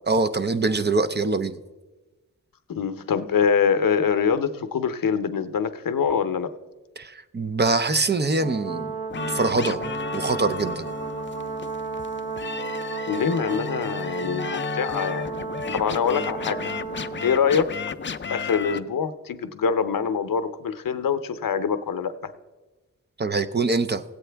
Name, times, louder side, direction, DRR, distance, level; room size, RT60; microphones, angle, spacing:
voice 1, 0.1-1.6 7.0-8.9 9.3-9.8 10.1-10.9 23.2-24.0, right 3 dB, 30° right, 10 dB, 0.5 m, -23 dB
voice 2, 2.7-6.5 13.1-15.3 15.7-16.7 17.2-17.7 18.3-22.1, left 6 dB, 80° left, 11 dB, 0.7 m, -24 dB
Brass instrument, 8.4-17.3, right 4 dB, 90° right, 1.4 m, -33 dB
sound 1, 9.1-18.8, left 6 dB, 35° left, 0.4 m, -34 dB
17.0 x 8.3 x 3.4 m, 1.2 s
wide cardioid pair, 90°, 33 cm